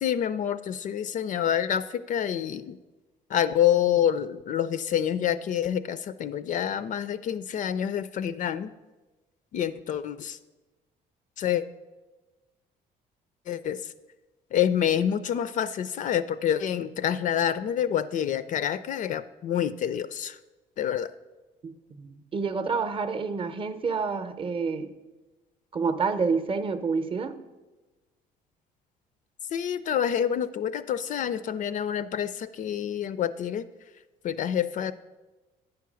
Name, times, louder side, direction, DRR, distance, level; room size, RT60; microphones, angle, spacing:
voice 1, 0.0-2.8 3.3-8.7 9.5-10.4 11.4-11.6 13.5-13.9 14.5-20.4 20.8-21.1 29.5-33.6 34.2-34.9, left 9 dB, 50° left, 14 dB, 0.4 m, -27 dB
voice 2, 21.6-24.9 25.7-27.3, right 5 dB, 30° right, 10 dB, 0.7 m, -28 dB
9.6 x 4.7 x 6.2 m, 1.2 s
cardioid pair, 110°, 17 cm